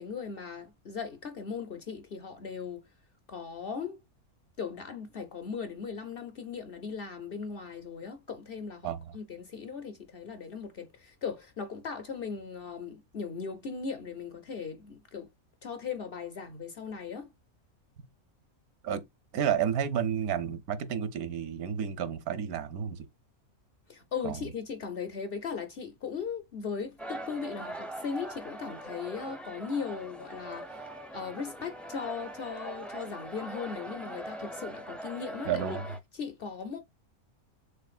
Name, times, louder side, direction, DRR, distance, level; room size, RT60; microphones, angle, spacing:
voice 1, 0.0-2.8 3.3-4.0 4.6-15.3 15.6-17.3 23.9-35.8 36.1-36.8, left 6 dB, 50° left, 0.7 m, -38 dB
voice 2, 19.3-23.0 24.2-24.4 35.4-35.8, right 8 dB, 80° right, 1.3 m, -31 dB
sound 1, 27.0-36.0, right 1 dB, ahead, 0.3 m, -42 dB
6.6 x 2.4 x 2.4 m
omnidirectional pair, 1.5 m